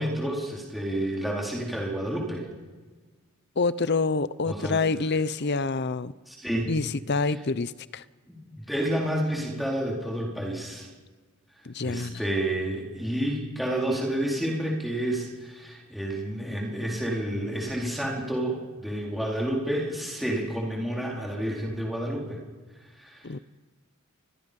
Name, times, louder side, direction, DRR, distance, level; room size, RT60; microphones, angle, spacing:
voice 1, 0.0-2.5 4.4-4.8 6.3-6.7 8.3-10.9 11.8-22.4 23.0-23.3, right 1 dB, ahead, 4.4 m, -30 dB
voice 2, 3.6-6.1 6.7-8.0 11.6-12.2 23.2-23.4, left 3 dB, 50° left, 0.7 m, -27 dB
29.5 x 22.0 x 5.4 m
head